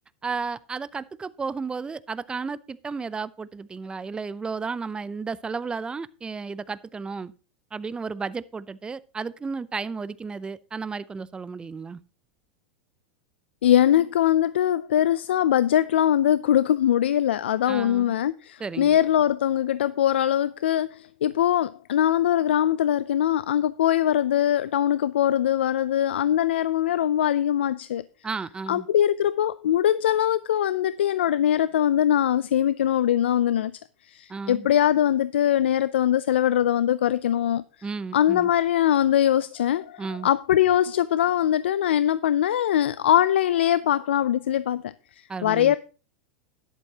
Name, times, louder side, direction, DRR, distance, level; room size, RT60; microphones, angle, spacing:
voice 1, 0.2-7.3 7.7-12.0 17.7-18.1 18.6-19.0 28.2-28.9 34.3-34.7 37.8-38.5 40.0-40.3 45.3-45.8, right 4 dB, 15° right, 0.6 m, -33 dB
voice 2, 13.6-28.0 28.7-33.7 34.0-37.6 38.1-45.8, left 11 dB, 85° left, 0.4 m, -22 dB
12.5 x 11.0 x 2.9 m
hypercardioid pair, 110°, 6 cm